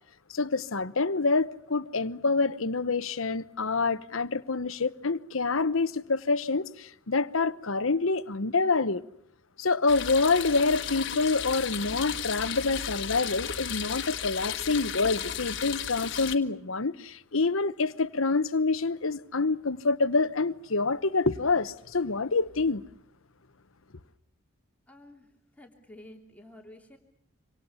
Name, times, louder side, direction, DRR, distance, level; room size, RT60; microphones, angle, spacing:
voice 1, 0.3-9.0 9.6-22.8, left 3 dB, 75° left, 1.0 m, -27 dB
sound 1, 9.9-16.3, left 8 dB, 60° left, 1.6 m, -34 dB
voice 2, 24.9-27.0, left 1 dB, 5° left, 3.0 m, -51 dB
26.5 x 26.0 x 7.1 m
head